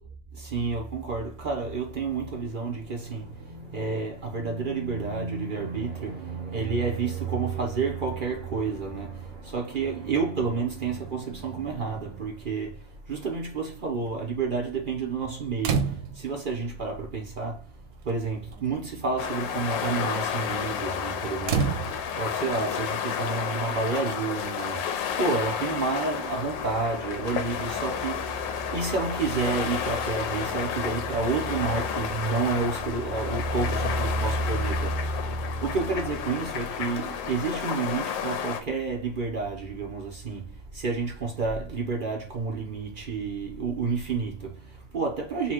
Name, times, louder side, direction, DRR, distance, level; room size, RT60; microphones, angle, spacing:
voice 1, 0.3-45.5, right 4 dB, 55° right, 0.5 m, -30 dB
sound 1, 15.6-16.3 17.4-17.5 17.9-18.2 18.5-18.8 21.4-22.4 23.9-24.0, right 6 dB, 90° right, 1.3 m, -28 dB
sound 2, 19.2-38.6, left 8 dB, 80° left, 1.3 m, -31 dB
4.1 x 2.3 x 4.4 m
omnidirectional pair, 2.0 m